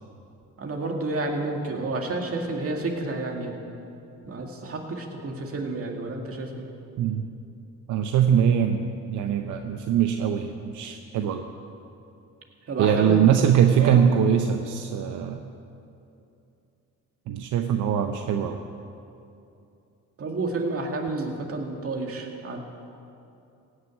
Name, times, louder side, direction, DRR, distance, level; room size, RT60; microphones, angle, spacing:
voice 1, 0.6-3.5 4.2-6.7 12.7-13.5 13.8-14.3 20.2-22.6, right 2 dB, 50° right, 2 dB, 2.1 m, -30 dB
voice 2, 7.9-11.5 12.8-15.4 17.3-18.6, right 8 dB, 80° right, 6 dB, 0.7 m, -22 dB
16.5 x 6.6 x 8.4 m, 2.7 s
cardioid pair, 90°, 30 cm